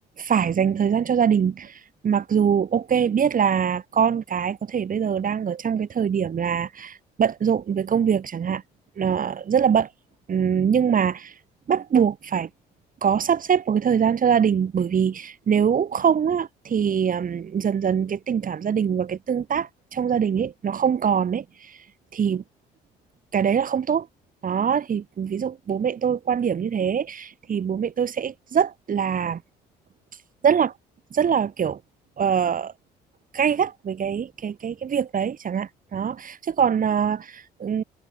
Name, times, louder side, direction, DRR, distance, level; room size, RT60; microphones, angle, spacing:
voice 1, 0.2-8.6 9.0-9.9 10.3-11.3 11.7-12.5 13.0-21.8 22.1-22.4 23.3-24.1 24.4-29.4 30.4-30.7 31.1-31.8 32.2-32.7 33.3-37.8, right 7 dB, 50° right, 8.0 m, -23 dB
supercardioid pair, 75°, 18 cm